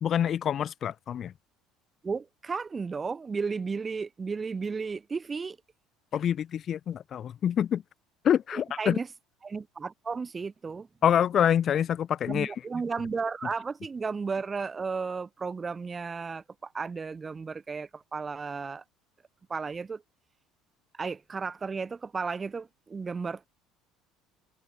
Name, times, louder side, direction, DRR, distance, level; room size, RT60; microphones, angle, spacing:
voice 1, 0.0-1.3 6.1-7.8 8.2-9.0 11.0-12.5, left 9 dB, 30° left, 0.5 m, -26 dB
voice 2, 2.0-5.6 8.5-9.1 9.4-10.9 12.3-16.4 16.7-18.8 19.5-20.0 21.0-23.5, right 5 dB, 15° right, 0.6 m, -34 dB
cardioid pair, 165°, 0 cm